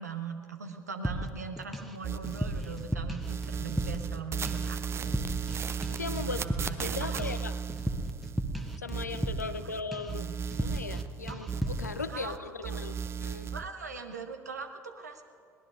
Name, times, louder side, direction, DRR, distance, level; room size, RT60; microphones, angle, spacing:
voice 1, 0.0-5.3 6.2-7.3 9.4-9.8 10.1-10.4 11.3-11.4 12.1-12.4 12.7-12.8 13.5-15.2, right 5 dB, 80° right, 6 dB, 1.0 m, -41 dB
sound 1, 1.0-2.0 2.2-4.2 4.5-4.8 5.0-5.6 5.8-9.6 9.9-10.2 10.5-11.0 11.3-11.9, right 1 dB, ahead, 1.1 m, -35 dB
sound 2, 2.0-2.9 3.2-9.8 10.1-12.4 12.6-13.6, right 6 dB, 30° right, 0.6 m, -36 dB
voice 2, 5.9-6.4 6.8-7.5 8.8-10.3 10.6-13.5, left 4 dB, 85° left, 11 dB, 0.5 m, -38 dB
22.0 x 18.5 x 2.5 m, 2.3 s
figure-of-eight pair, 60°, 9 cm